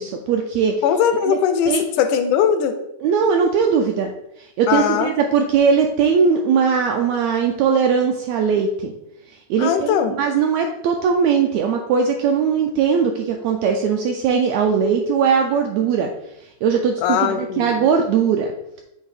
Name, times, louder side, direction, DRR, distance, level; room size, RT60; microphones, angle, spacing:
voice 1, 0.0-0.8 1.3-1.4 1.7-1.8 3.0-4.1 4.6-8.9 9.5-16.1 16.6-18.5, right 6 dB, 80° right, 3 dB, 1.6 m, -19 dB
voice 2, 0.8-2.8 4.7-5.1 9.6-10.1 17.0-17.9, left 8 dB, 85° left, 8 dB, 2.1 m, -20 dB
8.0 x 2.7 x 4.8 m, 0.83 s
omnidirectional pair, 3.5 m